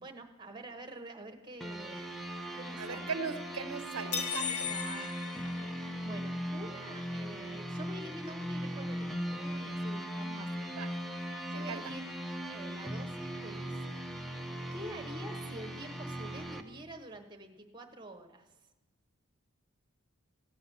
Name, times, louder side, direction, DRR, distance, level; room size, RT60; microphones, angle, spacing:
voice 1, 0.0-2.2 2.5-3.1 4.4-10.8 11.5-12.1 12.5-14.0 14.7-18.5, right 1 dB, 20° right, 4 dB, 1.0 m, -47 dB
sound 1, 1.6-16.6, equal, ahead, 0.7 m, -39 dB
voice 2, 2.8-4.7 10.8-10.9 11.5-11.9, right 5 dB, 70° right, 10 dB, 0.7 m, -39 dB
sound 2, 4.1-6.3, left 7 dB, 80° left, 0.9 m, -37 dB
15.0 x 8.6 x 7.0 m, 1.1 s
head